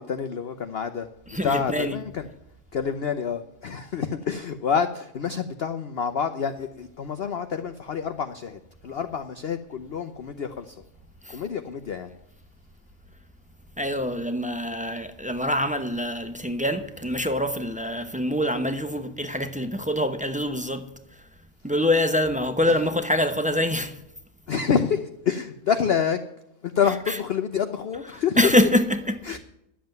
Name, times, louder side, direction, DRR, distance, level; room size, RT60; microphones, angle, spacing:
voice 1, 0.0-1.1 1.4-2.3 2.7-10.8 11.3-12.1 22.6-22.8 24.5-26.2 26.6-28.4 29.2-29.4, left 7 dB, 55° left, 0.7 m, -27 dB
voice 2, 1.3-2.0 11.2-11.4 13.8-20.9 21.6-23.9 26.8-27.2 28.0-29.2, left 1 dB, 10° right, 0.4 m, -25 dB
11.5 x 7.7 x 9.1 m
omnidirectional pair, 1.7 m